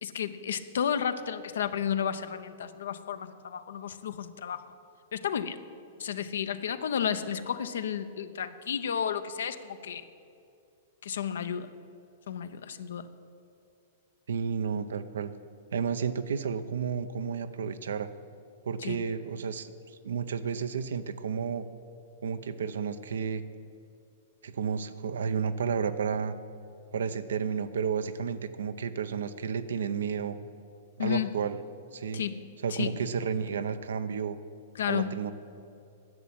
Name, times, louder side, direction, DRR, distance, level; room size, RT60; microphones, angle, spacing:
voice 1, 0.0-4.6 5.1-5.6 6.0-10.0 11.0-11.7 12.3-13.1 18.8-19.0 31.0-31.3 32.1-32.4 32.7-33.0 34.7-35.1, left 8 dB, 80° left, 11 dB, 0.7 m, -32 dB
voice 2, 14.3-15.3 15.7-18.1 18.7-19.7 20.0-21.6 22.2-23.4 24.4-26.3 26.9-30.4 31.0-31.6 31.9-32.2 32.6-34.4 34.9-35.3, right 6 dB, 80° right, 11 dB, 0.7 m, -31 dB
11.0 x 7.3 x 8.7 m, 2.5 s
hypercardioid pair, 125°, 0 cm